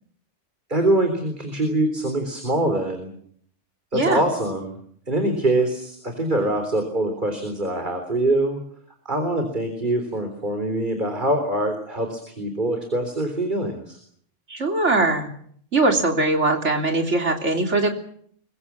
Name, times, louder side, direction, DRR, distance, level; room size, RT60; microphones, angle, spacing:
voice 1, 0.7-3.1 3.9-4.8 5.1-8.6 9.1-14.0, right 1 dB, 40° right, 6 dB, 4.0 m, -24 dB
voice 2, 14.5-15.3 15.7-17.9, right 2 dB, 70° right, 3 dB, 3.7 m, -21 dB
24.0 x 22.5 x 7.4 m, 0.63 s
omnidirectional pair, 1.2 m